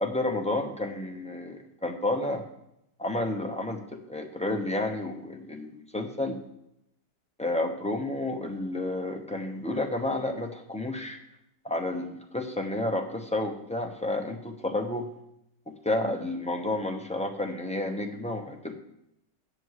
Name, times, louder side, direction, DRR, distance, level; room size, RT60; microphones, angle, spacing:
voice 1, 0.0-2.4 3.0-3.8 4.1-6.4 7.4-11.2 11.6-15.1 15.7-18.8, left 2 dB, 5° left, 2 dB, 0.6 m, -31 dB
7.7 x 6.1 x 7.9 m, 0.83 s
omnidirectional pair, 1.8 m